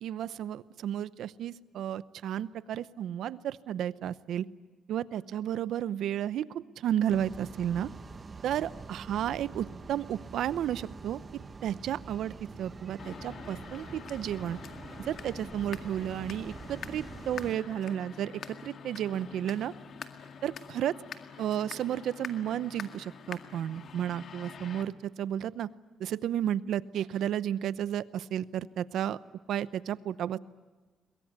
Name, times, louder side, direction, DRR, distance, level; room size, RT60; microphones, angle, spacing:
voice 1, 0.0-4.4 4.9-6.5 6.8-7.9 8.4-11.2 11.6-14.6 15.0-18.3 18.6-19.7 20.4-21.0 21.4-24.9 25.2-25.7 26.0-29.2 29.5-30.4, right 10 dB, 75° right, 17 dB, 0.7 m, -32 dB
sound 1, 7.1-17.6, right 4 dB, 35° right, 1.1 m, -45 dB
sound 2, 13.0-24.8, left 6 dB, 60° left, 2.0 m, -45 dB
22.5 x 22.0 x 9.7 m, 1.3 s
cardioid pair, 90°, 0 cm